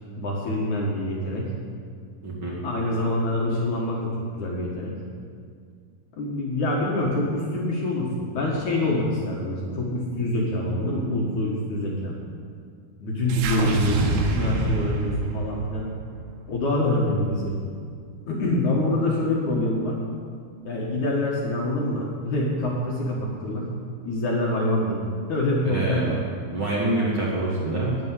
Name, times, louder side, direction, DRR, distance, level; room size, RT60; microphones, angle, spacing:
voice 1, 0.2-1.5 2.6-4.9 6.2-12.2 13.0-15.9 16.5-17.6 18.3-20.0 20.6-23.7 24.0-25.0 25.3-26.2, left 1 dB, 60° left, -3 dB, 2.1 m, -25 dB
voice 2, 2.2-2.6 25.6-26.1 26.5-28.0, right 2 dB, 50° right, -5 dB, 1.5 m, -26 dB
sound 1, 13.3-17.6, right 2 dB, 80° right, 3.5 m, -28 dB
11.0 x 8.8 x 9.8 m, 2.1 s
omnidirectional pair, 5.6 m